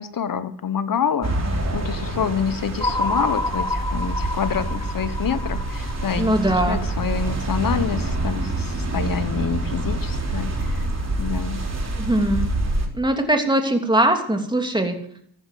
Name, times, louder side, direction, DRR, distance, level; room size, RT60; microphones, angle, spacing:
voice 1, 0.0-10.9 11.2-11.6, left 7 dB, 55° left, 13 dB, 1.3 m, -27 dB
sound 1, 1.2-12.9, right 2 dB, 40° right, 3.7 m, -26 dB
sound 2, 2.8-7.0, left 2 dB, 10° left, 1.3 m, -28 dB
voice 2, 6.2-6.8 12.0-12.5 12.9-14.9, right 1 dB, 10° right, 4 dB, 3.1 m, -21 dB
14.5 x 9.6 x 7.6 m, 0.63 s
cardioid pair, 70°, 40 cm